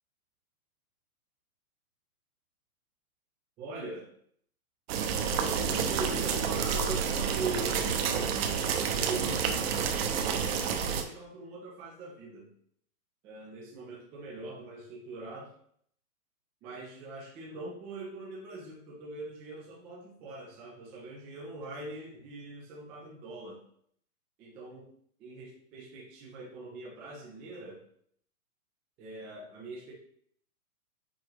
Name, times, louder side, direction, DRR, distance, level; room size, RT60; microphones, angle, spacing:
voice 1, 3.6-4.1 5.3-7.9 9.0-12.5 13.2-15.5 16.6-23.6 24.4-24.9 25.2-27.8 29.0-29.9, right 2 dB, 5° right, -3 dB, 0.3 m, -42 dB
sound 1, 4.9-11.0, right 7 dB, 45° right, 1.1 m, -29 dB
9.9 x 6.1 x 3.0 m, 0.64 s
hypercardioid pair, 140°, 44 cm